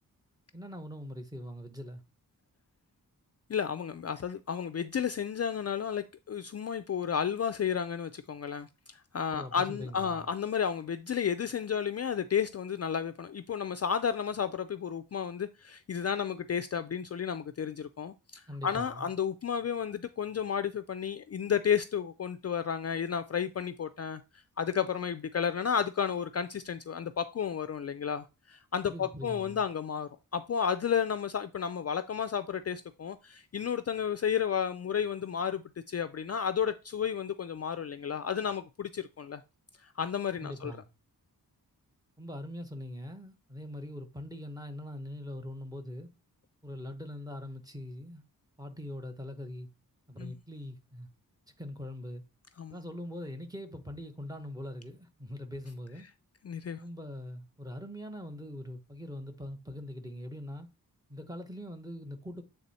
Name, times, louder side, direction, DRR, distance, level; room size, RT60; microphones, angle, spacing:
voice 1, 0.5-2.0 9.3-10.3 18.5-19.1 28.9-29.7 40.4-40.9 42.2-46.1 46.6-48.2 48.6-49.7 50.1-51.1 51.6-52.2 52.7-56.1 56.8-60.7 61.1-62.4, left 1 dB, 10° right, 1.0 m, -42 dB
voice 2, 3.5-24.2 24.6-39.4 40.0-40.7 50.2-50.3 52.6-52.7 56.4-56.8, left 7 dB, 45° left, 0.4 m, -32 dB
8.1 x 3.5 x 4.1 m
wide cardioid pair, 135°, 36 cm